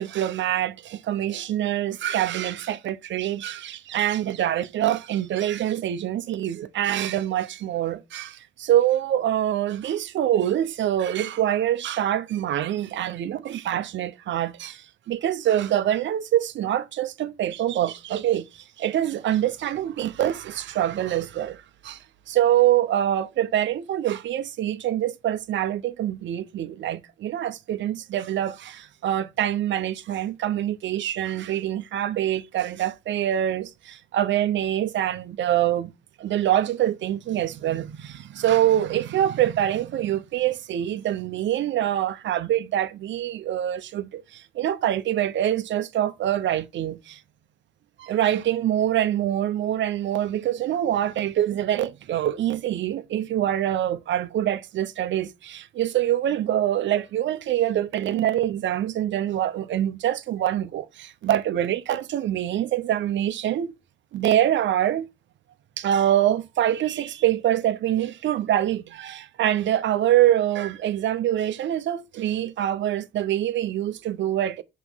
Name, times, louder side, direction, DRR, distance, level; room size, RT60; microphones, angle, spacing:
voice 1, 0.0-35.9 36.2-47.2 48.0-63.7 64.1-65.1 65.8-74.6, right 11 dB, 70° right, 0.8 m, -25 dB
5.9 x 3.0 x 5.5 m
cardioid pair, 90°, 20 cm